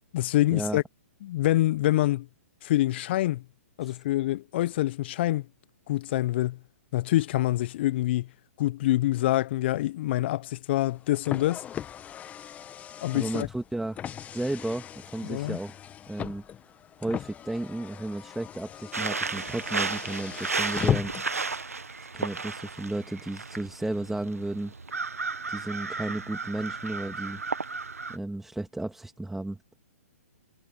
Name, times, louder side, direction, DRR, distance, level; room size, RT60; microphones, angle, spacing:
voice 1, 0.1-0.8 1.2-2.3 2.6-3.4 3.8-5.5 5.9-6.6 6.9-8.3 8.6-11.6 13.0-13.5 15.2-15.6, left 15 dB, 50° left, 0.8 m, -26 dB
Car, 10.8-21.4, left 9 dB, 20° left, 1.3 m, -37 dB
voice 2, 13.1-14.0 14.3-15.8 16.1-16.4 17.0-21.1 22.1-24.7 25.5-27.4 28.1-29.6, right 2 dB, 5° right, 2.3 m, -33 dB
sound 1, 18.9-28.2, right 4 dB, 90° right, 1.8 m, -33 dB
hypercardioid pair, 125°, 8 cm